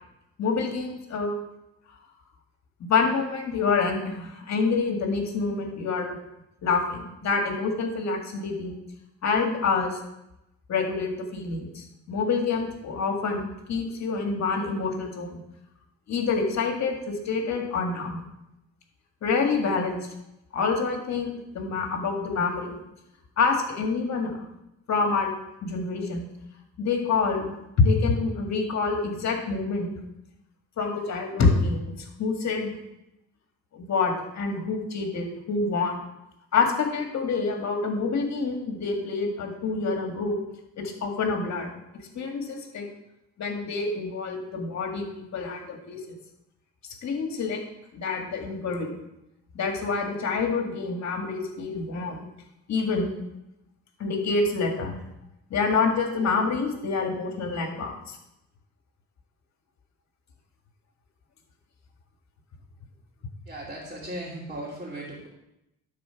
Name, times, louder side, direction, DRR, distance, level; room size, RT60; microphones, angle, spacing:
voice 1, 0.4-1.4 2.8-6.2 6.6-8.8 9.2-10.0 10.7-15.4 16.1-18.2 19.2-20.1 20.5-22.8 23.4-24.3 24.9-25.3 25.6-26.3 26.8-29.9 30.8-32.7 33.7-36.1 36.5-40.4 40.8-41.7 42.2-42.9 43.4-46.0 47.0-47.6 47.9-49.0 49.6-52.2 52.7-53.1 54.0-55.0 55.5-58.2, left 4 dB, 65° left, 3 dB, 1.9 m, -27 dB
voice 2, 63.5-65.3, right 1 dB, 25° right, -7 dB, 2.6 m, -37 dB
12.0 x 4.3 x 5.8 m, 0.88 s
cardioid pair, 90°, 30 cm